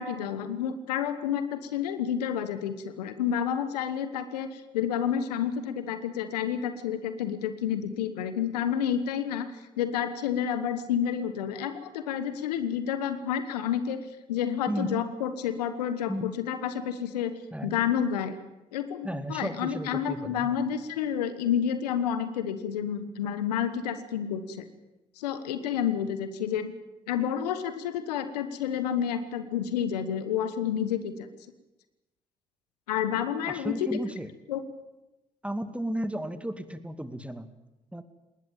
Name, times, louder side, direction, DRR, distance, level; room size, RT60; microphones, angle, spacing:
voice 1, 0.0-14.0 14.3-17.3 17.6-18.4 18.7-24.7 25.2-26.7 27.1-31.3 32.9-33.7 34.5-34.6, left 8 dB, 85° left, 12 dB, 1.2 m, -30 dB
voice 2, 14.7-15.0 16.1-16.3 17.5-17.8 19.0-20.6 33.5-34.3 35.4-37.5 37.9-38.0, equal, 5° right, 10 dB, 2.3 m, -34 dB
19.5 x 19.5 x 9.0 m, 1.0 s
hypercardioid pair, 45°, 20 cm